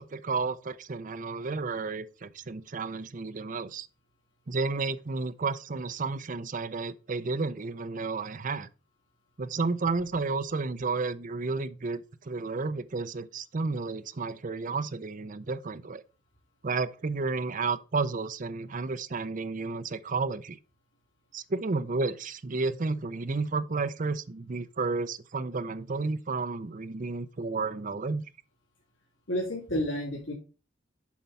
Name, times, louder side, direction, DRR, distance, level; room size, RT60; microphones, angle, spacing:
voice 1, 0.0-3.9 4.5-8.7 9.4-16.0 16.6-20.6 21.3-28.2, right 3 dB, 45° right, 0.6 m, -32 dB
voice 2, 29.3-30.3, equal, 80° left, 2.5 m, -30 dB
7.3 x 4.5 x 5.4 m
head